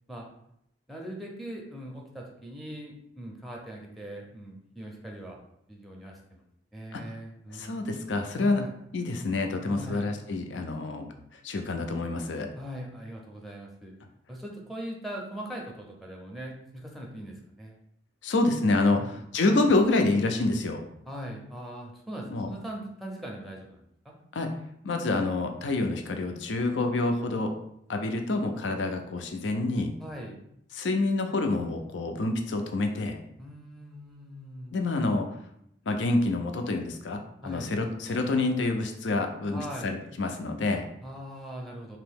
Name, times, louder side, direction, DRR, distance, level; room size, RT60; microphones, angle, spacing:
voice 1, 0.9-5.4 5.7-6.4 6.7-7.8 8.3-8.7 9.7-10.1 12.6-13.9 14.3-17.7 18.9-19.3 21.1-24.2 30.0-30.4 33.4-34.8 37.4-37.7 39.5-40.0 41.0-42.0, right 1 dB, ahead, -1 dB, 0.5 m, -41 dB
voice 2, 7.5-8.6 8.9-11.1 11.4-12.5 18.2-20.8 22.3-22.5 24.3-24.5 24.8-27.5 27.9-29.9 30.7-33.2 34.7-35.3 35.9-40.9, left 2 dB, 90° left, 5 dB, 0.5 m, -27 dB
2.9 x 2.7 x 3.5 m, 0.75 s
head